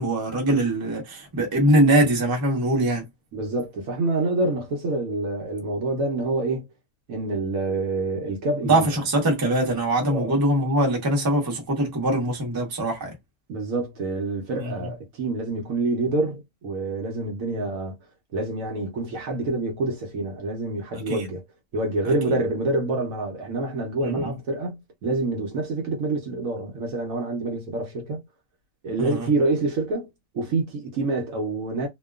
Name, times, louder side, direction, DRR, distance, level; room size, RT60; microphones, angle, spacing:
voice 1, 0.0-3.1 8.6-13.1 14.6-14.7 21.1-21.2 22.0-22.1 24.0-24.3 29.0-29.3, right 1 dB, 20° right, 0.6 m, -22 dB
voice 2, 3.3-6.7 7.1-8.9 10.1-10.3 13.5-18.0 18.3-21.4 21.7-28.2 28.8-30.1 30.3-31.9, right 2 dB, 60° right, 1.0 m, -27 dB
2.8 x 2.3 x 2.3 m
omnidirectional pair, 1.9 m